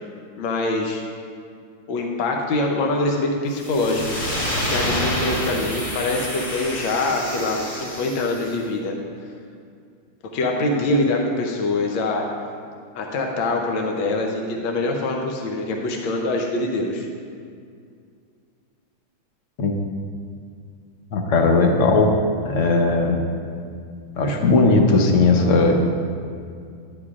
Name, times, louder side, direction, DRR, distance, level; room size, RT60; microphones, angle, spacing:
voice 1, 0.3-1.0 1.9-4.2 4.7-8.9 10.3-12.3 12.9-17.1, left 2 dB, 75° left, 1 dB, 1.5 m, -24 dB
sound 1, 3.5-8.5, equal, 25° left, 0.7 m, -28 dB
voice 2, 21.1-22.1 22.4-23.2 24.2-25.7, left 3 dB, 50° left, 2 dB, 1.0 m, -17 dB
11.0 x 9.8 x 2.4 m, 2.2 s
omnidirectional pair, 2.1 m